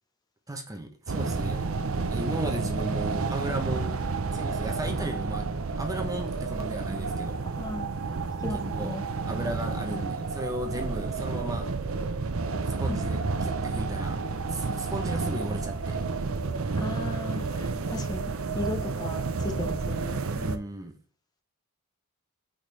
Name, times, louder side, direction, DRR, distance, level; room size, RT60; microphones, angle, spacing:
voice 1, 0.5-1.7 2.1-4.0 4.3-5.5 5.8-7.4 8.5-8.9 9.3-11.7 12.8-14.2 14.5-16.0 20.3-21.0, right 1 dB, 15° right, 4 dB, 0.7 m, -35 dB
sound 1, 1.1-20.6, right 4 dB, 70° right, 0.7 m, -30 dB
voice 2, 7.4-7.9 8.4-9.0 9.9-10.1 12.9-13.2 16.8-20.2, left 2 dB, 20° left, 3 dB, 0.8 m, -36 dB
6.4 x 5.1 x 3.2 m, 0.42 s
head